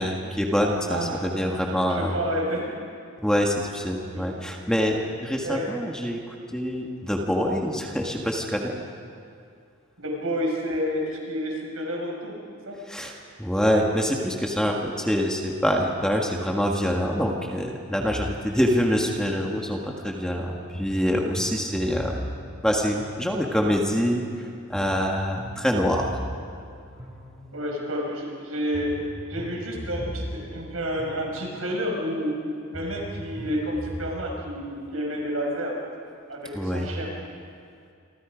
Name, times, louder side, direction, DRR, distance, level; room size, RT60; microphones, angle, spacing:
voice 1, 0.0-2.1 3.2-6.2 6.5-8.7 12.9-22.2 22.6-26.2 36.5-36.9, equal, 5° left, 0 dB, 1.7 m, -25 dB
voice 2, 0.9-1.3 1.5-2.7 4.0-4.5 4.9-5.0 5.4-5.7 10.0-12.3 12.7-12.8 27.5-32.4 32.7-35.8 36.3-37.1, equal, 85° right, 0 dB, 6.1 m, -30 dB
sound 1, 18.0-19.9 20.7-23.8 24.7-27.8 28.7-31.8 32.7-34.1, equal, 20° right, 7.0 m, -38 dB
28.5 x 25.0 x 5.2 m, 2.4 s
head